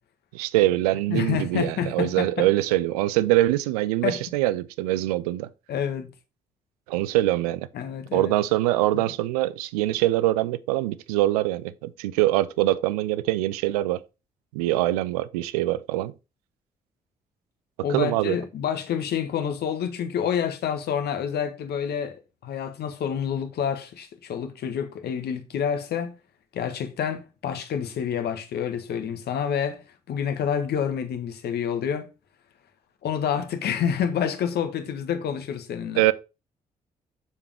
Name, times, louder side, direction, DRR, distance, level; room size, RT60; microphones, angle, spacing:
voice 1, 0.3-5.5 6.9-7.7 8.1-14.0 14.5-16.1 17.9-18.4 36.0-36.1, right 16 dB, 75° right, 0.5 m, -23 dB
voice 2, 1.1-2.5 4.0-4.2 5.7-6.1 7.7-8.3 8.9-9.0 17.8-22.2 22.4-26.1 26.5-29.8 30.1-32.1 33.0-36.0, left 8 dB, 60° left, 1.4 m, -28 dB
7.0 x 7.0 x 3.4 m
figure-of-eight pair, 40°, 19 cm